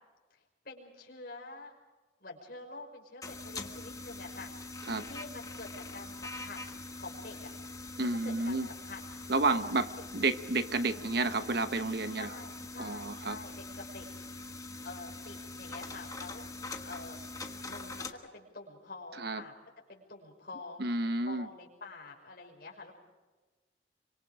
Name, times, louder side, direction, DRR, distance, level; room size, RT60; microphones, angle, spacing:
voice 1, 0.3-1.7 2.2-6.6 6.9-7.5 8.0-9.6 10.0-10.1 12.2-14.1 14.8-16.4 16.8-17.2 17.6-19.5 19.9-20.8 21.2-22.9, left 3 dB, 55° left, 0 dB, 5.8 m, -47 dB
sound 1, 3.2-18.1, left 2 dB, 20° left, 1.4 m, -43 dB
voice 2, 8.0-8.7 9.3-9.8 10.1-12.3 12.8-13.4 19.2-19.4 20.8-21.5, right 3 dB, 55° right, 10 dB, 1.1 m, -30 dB
27.0 x 25.0 x 5.1 m, 1.2 s
head